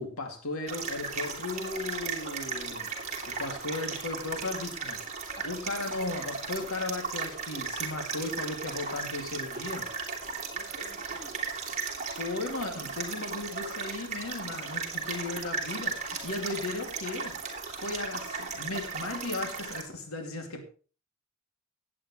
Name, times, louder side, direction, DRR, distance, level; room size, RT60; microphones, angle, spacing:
voice 1, 0.0-2.9 3.3-5.2 5.4-9.9 12.2-17.4 17.7-20.6, left 2 dB, 90° left, 2.4 m, -36 dB
sound 1, 0.7-19.8, right 5 dB, 35° right, 2.7 m, -36 dB
voice 2, 5.4-5.7 10.5-11.5, equal, 20° left, 3.7 m, -51 dB
17.5 x 8.7 x 3.1 m
head